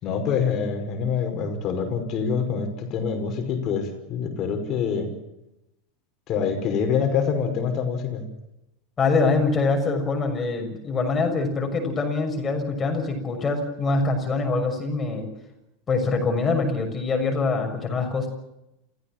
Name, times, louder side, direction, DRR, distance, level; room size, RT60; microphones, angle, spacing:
voice 1, 0.0-5.1 6.3-8.2, left 6 dB, 40° left, 5 dB, 5.4 m, -25 dB
voice 2, 9.0-15.3 15.9-18.3, left 3 dB, 20° left, 3 dB, 6.4 m, -24 dB
29.0 x 16.5 x 7.6 m, 0.90 s
figure-of-eight pair, 85°, 0 cm